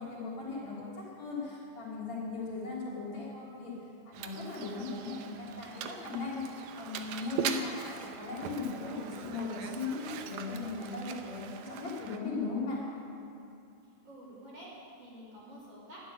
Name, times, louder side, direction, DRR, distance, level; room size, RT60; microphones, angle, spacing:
voice 1, 0.0-3.7 4.1-6.4 6.8-12.8, left 4 dB, 45° left, -7 dB, 4.1 m, -38 dB
Mechanisms, 4.1-12.2, right 8 dB, 80° right, 2.1 m, -41 dB
voice 2, 14.0-16.0, equal, 35° right, -7 dB, 4.0 m, -49 dB
11.5 x 11.5 x 9.3 m, 2.6 s
omnidirectional pair, 4.7 m